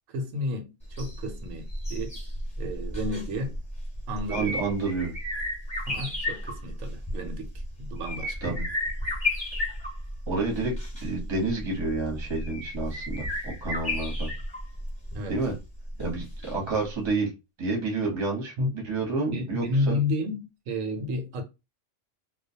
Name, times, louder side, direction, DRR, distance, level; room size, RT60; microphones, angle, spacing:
voice 1, 0.1-0.7 1.0-2.2 2.6-3.6 4.1-4.6 5.8-7.5 7.8-8.6 15.1-15.4 18.6-18.7 19.3-21.4, left 1 dB, 85° right, 1.0 m, -31 dB
sound 1, 0.8-16.8 17.1-17.2, left 1 dB, 5° left, 1.1 m, -33 dB
voice 2, 4.3-5.1 8.4-8.7 10.3-10.7 11.0-14.3 15.3-15.5 16.0-17.3 17.6-20.0, right 3 dB, 25° right, 0.8 m, -29 dB
2.3 x 2.1 x 2.6 m
omnidirectional pair, 1.3 m